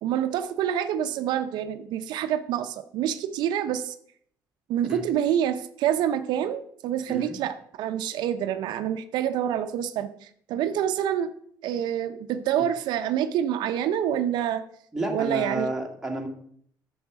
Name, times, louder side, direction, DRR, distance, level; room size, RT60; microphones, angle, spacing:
voice 1, 0.0-3.9 4.7-11.3 11.6-14.6 15.1-15.7, right 10 dB, 85° right, 9 dB, 0.6 m, -27 dB
voice 2, 14.9-16.3, right 1 dB, 5° right, 1 dB, 1.5 m, -30 dB
9.5 x 7.1 x 4.8 m, 0.62 s
cardioid pair, 160°, 7 cm